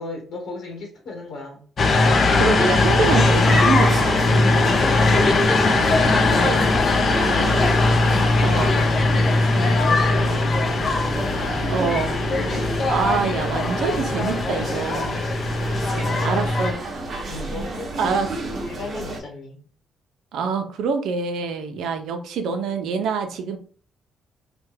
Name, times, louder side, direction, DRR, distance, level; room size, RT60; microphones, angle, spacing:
voice 1, 0.0-1.6 4.6-5.5 7.2-7.6 8.2-8.7 9.6-11.0 14.6-14.7 15.7-16.6 17.3-18.2 18.6-19.6, left 3 dB, 75° left, -1 dB, 1.2 m, -36 dB
sound 1, 1.8-16.7, left 3 dB, 50° left, 0.5 m, -20 dB
voice 2, 2.4-4.1 6.3-6.7 8.4-8.8 11.7-12.1 12.9-15.2 16.2-16.7 18.0-18.3 20.3-23.6, right 5 dB, 80° right, 6 dB, 0.6 m, -25 dB
sound 2, 3.0-19.2, right 2 dB, 45° right, 0.9 m, -30 dB
3.3 x 2.2 x 3.2 m, 0.43 s
cardioid pair, 90°, 0 cm